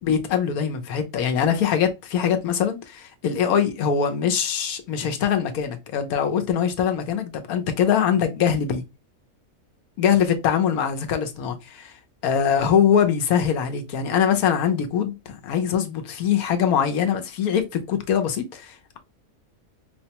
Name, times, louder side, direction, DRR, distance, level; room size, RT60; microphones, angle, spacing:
voice 1, 0.0-8.8 10.0-11.9 12.2-18.8, left 8 dB, 90° left, 1.2 m, -22 dB
5.0 x 2.1 x 2.8 m
omnidirectional pair, 1.5 m